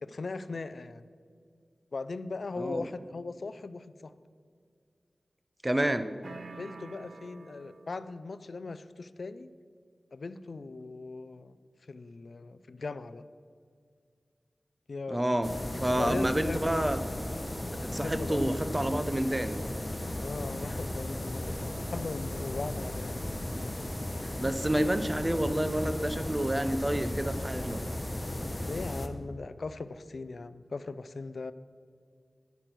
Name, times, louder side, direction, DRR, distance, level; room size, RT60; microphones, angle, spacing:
voice 1, 0.0-1.0 1.9-4.1 5.7-6.0 6.5-9.5 10.1-11.6 11.9-13.2 14.9-15.3 15.9-16.9 18.0-18.6 20.2-23.2 28.6-31.5, left 3 dB, 70° left, 14 dB, 0.4 m, -39 dB
voice 2, 5.6-6.1 15.1-17.0 17.9-19.6 24.2-27.8, right 1 dB, 20° right, 10 dB, 0.7 m, -29 dB
sound 1, 6.2-8.2, right 4 dB, 75° right, 0.5 m, -47 dB
sound 2, 15.4-29.1, left 1 dB, 30° left, 0.9 m, -35 dB
9.3 x 6.8 x 5.9 m, 2.1 s
wide cardioid pair, 55°, 0 cm